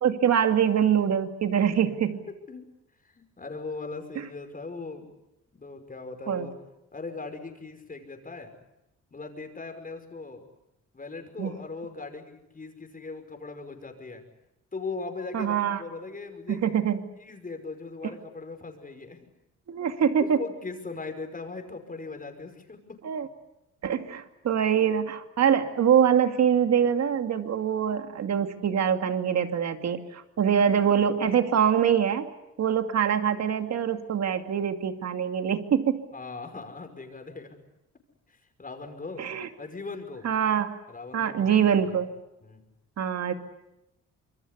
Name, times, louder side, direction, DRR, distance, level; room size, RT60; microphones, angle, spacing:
voice 1, 0.0-2.2 6.3-6.5 11.4-11.5 15.3-15.8 16.5-17.0 19.7-20.4 23.0-23.3 23.8-32.3 32.6-36.0 39.2-39.5 40.2-40.7 41.1-42.1 43.0-43.3, right 8 dB, 60° right, 7 dB, 2.5 m, -24 dB
voice 2, 3.0-5.1 5.5-6.6 6.9-8.5 9.1-10.4 10.9-14.2 14.7-16.6 17.1-19.2 20.2-23.0 36.1-37.6 38.3-39.3 39.6-40.3 40.9-42.0 42.4-42.6, left 3 dB, 30° left, 6 dB, 5.6 m, -39 dB
26.5 x 23.0 x 8.3 m, 0.91 s
cardioid pair, 90°, 30 cm